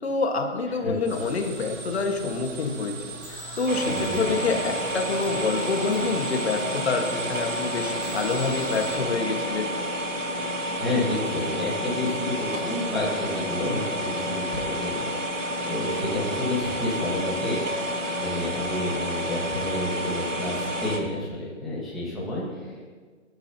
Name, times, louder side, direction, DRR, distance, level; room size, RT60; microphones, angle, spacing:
voice 1, 0.0-3.0 3.6-9.7, left 4 dB, 55° left, 3 dB, 1.7 m, -27 dB
sound 1, 1.0-9.0, right 2 dB, 25° right, 3.9 m, -38 dB
sound 2, 3.7-21.0, equal, 80° right, 2.2 m, -30 dB
voice 2, 3.8-4.2 10.8-22.8, left 1 dB, ahead, -11 dB, 1.6 m, -30 dB
19.0 x 11.5 x 2.9 m, 1.5 s
hypercardioid pair, 165°, 38 cm